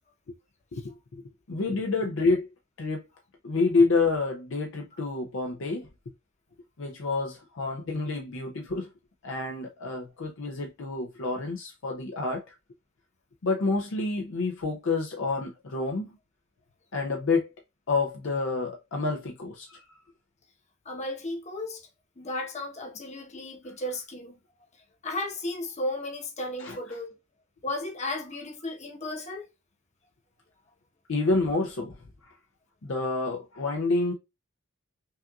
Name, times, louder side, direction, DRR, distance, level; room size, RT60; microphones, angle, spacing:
voice 1, 0.7-2.5 2.8-3.1 3.4-5.9 6.8-8.9 9.2-12.5 13.4-16.2 16.9-17.5 17.9-19.8 26.6-26.8 31.1-31.9 32.2-32.3 32.8-34.1, left 3 dB, 65° left, 0.6 m, -28 dB
voice 2, 20.8-21.8 22.2-24.4 25.0-27.1 27.6-29.5, left 1 dB, 35° left, 1.0 m, -34 dB
5.5 x 2.5 x 2.3 m
head